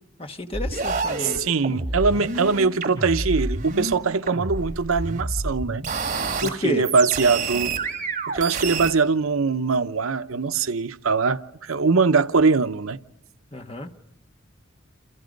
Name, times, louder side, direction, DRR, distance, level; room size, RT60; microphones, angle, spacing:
voice 1, 0.2-1.4 6.4-6.9 13.5-13.9, left 1 dB, 25° left, 1.5 m, -30 dB
sound 1, 0.5-3.9 4.3-6.5 6.8-8.9, right 3 dB, 40° right, 3.1 m, -28 dB
voice 2, 1.2-5.8 6.4-7.7 8.3-13.0, right 4 dB, 80° right, 0.8 m, -22 dB
29.5 x 28.0 x 5.3 m
head